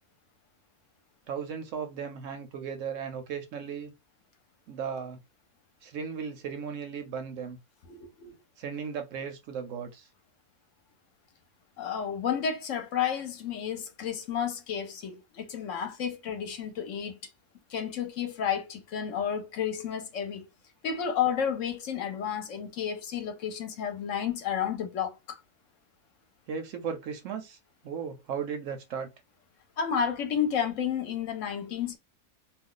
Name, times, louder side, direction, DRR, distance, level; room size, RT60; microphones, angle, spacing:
voice 1, 1.3-3.9 4.7-5.2 5.8-7.6 8.6-10.1 26.5-27.6 27.8-29.1, right 6 dB, 70° right, 0.9 m, -36 dB
voice 2, 7.9-8.3 11.8-17.2 17.7-20.5 20.8-25.4 29.8-32.0, left 8 dB, 65° left, 0.9 m, -31 dB
2.4 x 2.3 x 3.7 m
omnidirectional pair, 1.5 m